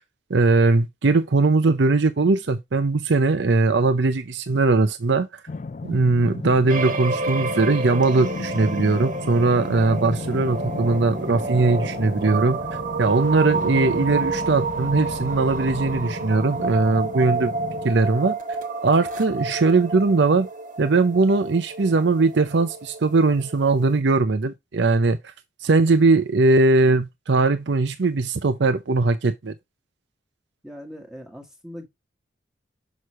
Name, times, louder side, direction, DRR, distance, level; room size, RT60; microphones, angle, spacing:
voice 1, 0.3-5.4 5.8-12.6 13.0-17.5 17.8-18.4 18.8-20.5 20.8-25.3 25.6-29.5, right 3 dB, 65° right, 0.6 m, -20 dB
sound 1, 5.5-18.0, left 3 dB, 40° left, 0.4 m, -35 dB
sound 2, 6.7-24.0, right 3 dB, 40° right, 1.4 m, -30 dB
sound 3, 10.2-16.1, left 1 dB, 60° left, 1.3 m, -48 dB
voice 2, 30.6-31.9, equal, 5° right, 1.4 m, -40 dB
6.4 x 6.1 x 3.1 m
head